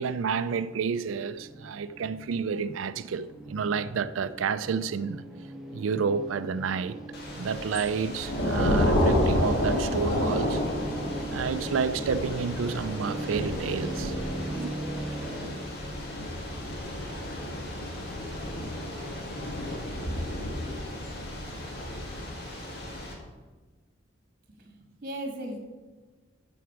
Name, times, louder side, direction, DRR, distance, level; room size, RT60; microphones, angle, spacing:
voice 1, 0.0-5.2 5.7-7.0 7.4-10.6 11.3-14.1 14.6-14.7, right 5 dB, 90° right, 0.4 m, -30 dB
sound 1, 0.6-15.5, right 1 dB, ahead, 1.3 m, -39 dB
Thunder / Rain, 7.1-23.1, left 1 dB, 55° left, 1.7 m, -31 dB
voice 2, 24.5-25.6, right 1 dB, 45° right, 1.5 m, -37 dB
9.3 x 6.3 x 4.7 m
head